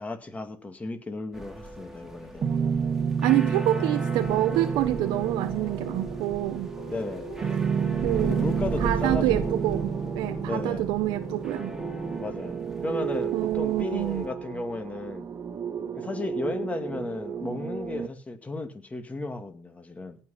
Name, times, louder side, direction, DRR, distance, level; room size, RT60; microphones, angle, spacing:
voice 1, 0.0-2.5 6.9-7.3 8.2-9.6 10.4-10.9 12.2-15.3 16.0-20.2, left 2 dB, 20° left, 2.2 m, -34 dB
sound 1, 1.3-14.3, right 1 dB, 5° right, 2.5 m, -40 dB
sound 2, 2.4-18.1, right 6 dB, 40° right, 1.4 m, -31 dB
voice 2, 3.2-6.7 8.0-8.4 8.8-11.7 13.3-14.2, right 15 dB, 90° right, 0.6 m, -27 dB
sound 3, 3.3-12.2, left 7 dB, 50° left, 1.2 m, -44 dB
17.0 x 5.9 x 5.7 m
cardioid pair, 100°, 7 cm